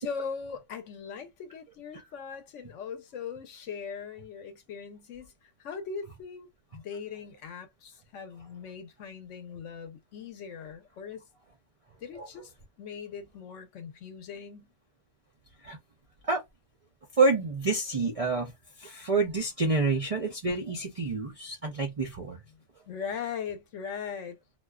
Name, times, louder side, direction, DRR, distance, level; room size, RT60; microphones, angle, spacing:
voice 1, 0.0-5.3 5.6-11.2 12.0-12.5 12.8-14.7 22.9-24.4, left 6 dB, 75° left, 1.0 m, -40 dB
voice 2, 17.2-18.5 18.8-22.4, right 3 dB, 55° right, 0.4 m, -28 dB
2.4 x 2.2 x 2.3 m
omnidirectional pair, 1.3 m